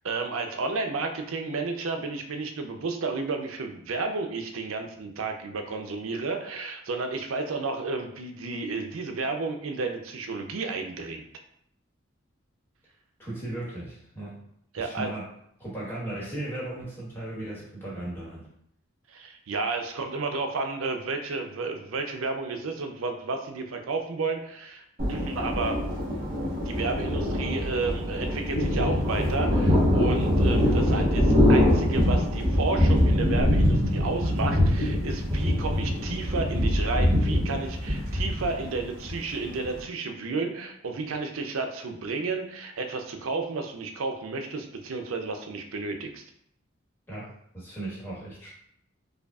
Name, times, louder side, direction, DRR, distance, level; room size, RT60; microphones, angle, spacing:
voice 1, 0.0-11.2 14.7-15.1 19.1-25.8 26.7-46.2, right 3 dB, 85° right, 5 dB, 0.5 m, -32 dB
voice 2, 13.2-14.3 14.7-15.2 15.6-18.5 47.1-48.5, right 1 dB, 10° left, -7 dB, 1.3 m, -36 dB
Thunder, 25.0-39.8, left 1 dB, 45° right, 1.5 m, -24 dB
5.0 x 2.3 x 2.3 m, 0.71 s
head